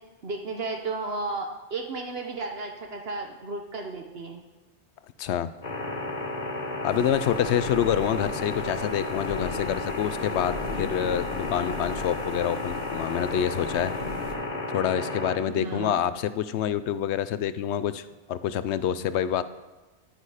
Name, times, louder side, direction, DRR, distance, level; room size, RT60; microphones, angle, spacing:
voice 1, 0.2-4.4 15.5-16.0, right 3 dB, 60° right, 3 dB, 1.1 m, -33 dB
voice 2, 5.2-5.5 6.8-13.9 14.7-19.4, left 9 dB, 75° left, 14 dB, 0.8 m, -27 dB
sound 1, 5.6-15.4, left 2 dB, 40° left, 1.1 m, -33 dB
sound 2, 6.9-14.4, left 3 dB, 55° left, 1.4 m, -39 dB
10.5 x 9.6 x 4.9 m, 1.2 s
omnidirectional pair, 1.2 m